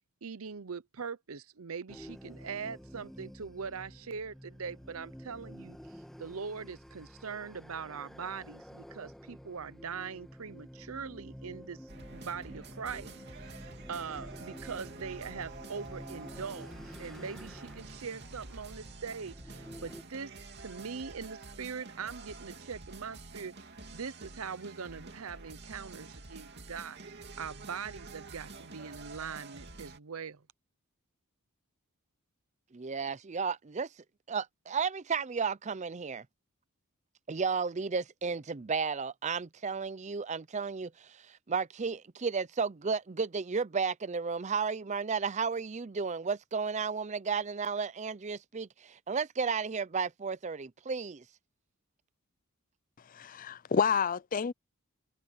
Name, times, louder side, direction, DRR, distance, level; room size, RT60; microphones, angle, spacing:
voice 1, 0.2-5.8 6.2-30.4, right 6 dB, 75° right, 0.8 m, -42 dB
sound 1, 1.9-20.0, equal, ahead, 1.7 m, -50 dB
sound 2, 11.9-30.0, right 3 dB, 50° right, 2.9 m, -48 dB
voice 2, 32.7-33.9 34.3-36.3 37.3-51.2, right 5 dB, 30° right, 0.5 m, -33 dB
voice 3, 53.1-54.5, left 6 dB, 40° left, 0.4 m, -29 dB
head